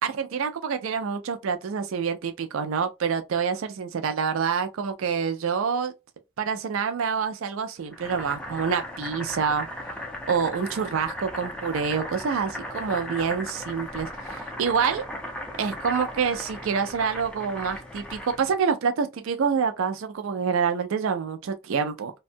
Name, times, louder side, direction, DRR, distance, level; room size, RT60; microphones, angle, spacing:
voice 1, 0.0-5.9 6.4-9.7 10.3-15.1 15.6-22.1, right 6 dB, 75° right, 0.4 m, -27 dB
Boiling, 7.9-18.6, left 1 dB, 5° left, 0.4 m, -37 dB
2.6 x 2.2 x 2.6 m
head